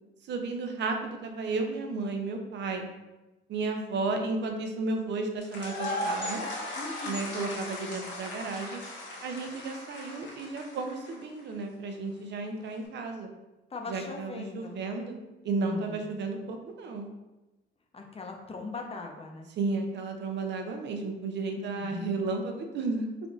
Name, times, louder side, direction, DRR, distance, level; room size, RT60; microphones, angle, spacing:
voice 1, 0.2-2.9 3.5-6.4 7.1-8.8 9.2-13.3 13.9-15.2 15.4-17.1 19.6-23.1, right 3 dB, 60° right, 4 dB, 0.6 m, -33 dB
sound 1, 5.4-11.4, left 1 dB, 65° left, 0.9 m, -37 dB
voice 2, 6.7-7.3 13.7-14.8 15.5-16.1 17.9-19.5 21.6-22.2, left 3 dB, 30° left, 2 dB, 0.6 m, -40 dB
3.4 x 2.4 x 3.9 m, 1.1 s
cardioid pair, 90°, 20 cm